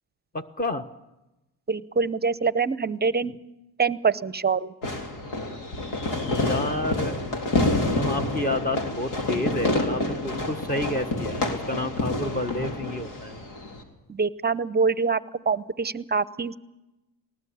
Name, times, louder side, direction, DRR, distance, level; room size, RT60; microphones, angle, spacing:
voice 1, 0.3-0.8 6.2-7.2 7.8-13.4, left 1 dB, 20° left, 9 dB, 1.3 m, -30 dB
voice 2, 1.7-3.3 3.8-4.7 14.1-16.6, right 5 dB, 20° right, 17 dB, 0.8 m, -25 dB
Fireworks, 4.8-13.8, left 2 dB, 85° left, 3.7 m, -28 dB
20.0 x 18.5 x 8.6 m, 0.99 s
supercardioid pair, 75°, 45 cm